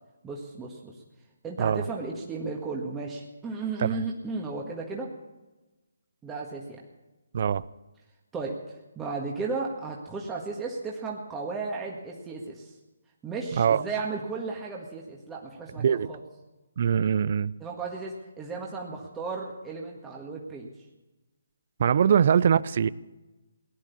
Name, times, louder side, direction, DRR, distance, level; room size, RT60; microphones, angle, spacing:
voice 1, 0.2-0.9 1.4-5.1 6.2-6.8 8.3-8.6 8.9-12.8 13.2-16.2 17.6-20.7 22.1-22.2, right 4 dB, 10° right, -2 dB, 1.7 m, -34 dB
voice 2, 15.8-16.1 16.8-17.5 21.8-22.9, right 8 dB, 50° right, 21 dB, 0.5 m, -22 dB
18.0 x 10.5 x 7.1 m, 1.1 s
figure-of-eight pair, 145°, 0 cm